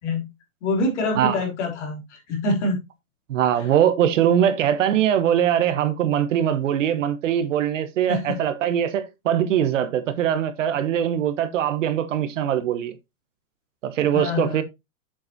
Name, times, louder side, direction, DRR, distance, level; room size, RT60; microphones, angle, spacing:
voice 1, 0.6-2.8 3.5-3.7 8.1-8.4 14.1-14.6, left 2 dB, 50° left, 3.4 m, -25 dB
voice 2, 3.3-13.0 13.8-14.6, right 10 dB, 60° right, 1.1 m, -22 dB
7.6 x 6.5 x 2.8 m
supercardioid pair, 170°, 43 cm